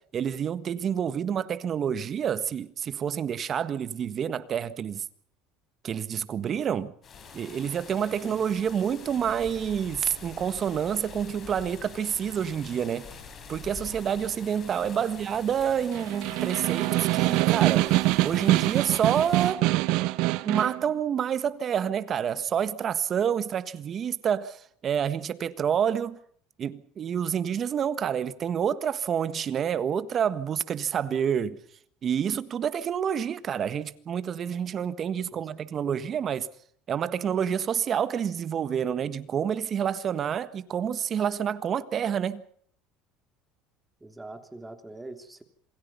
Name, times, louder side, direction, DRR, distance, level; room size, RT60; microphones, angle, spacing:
voice 1, 0.0-5.0 5.8-6.9 7.3-13.1 13.5-17.9 18.2-19.6 20.4-26.2 26.6-31.6 32.0-36.5 36.9-42.4, right 8 dB, 35° right, 1.6 m, -28 dB
sound 1, 7.0-19.5, left 5 dB, 35° left, 5.7 m, -46 dB
Snare drum, 15.8-20.8, right 19 dB, 70° right, 1.1 m, -24 dB
voice 2, 44.0-45.4, right 2 dB, 10° right, 3.2 m, -43 dB
27.5 x 20.5 x 5.6 m
supercardioid pair, 125°, 0 cm